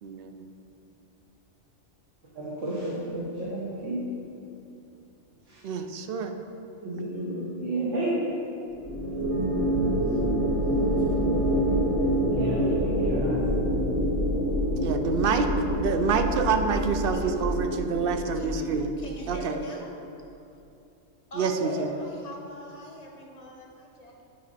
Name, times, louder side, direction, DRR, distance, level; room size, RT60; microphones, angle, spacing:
voice 1, 0.0-0.4 5.6-6.3 14.8-15.5 15.8-19.0 19.3-19.6 21.3-21.9, right 5 dB, 60° right, 7 dB, 0.7 m, -27 dB
voice 2, 2.3-4.1 5.4-5.6 6.8-8.4 12.3-13.4 19.3-19.6 21.5-21.8, right 1 dB, 80° right, -8 dB, 1.7 m, -31 dB
sound 1, 8.8-19.3, right 1 dB, 15° right, 0.8 m, -27 dB
sound 2, 9.3-16.7, left 8 dB, 75° left, 1.1 m, -36 dB
voice 3, 18.3-19.9 21.3-24.3, equal, 35° left, 0 dB, 0.8 m, -44 dB
9.5 x 5.2 x 4.1 m, 2.7 s
omnidirectional pair, 1.3 m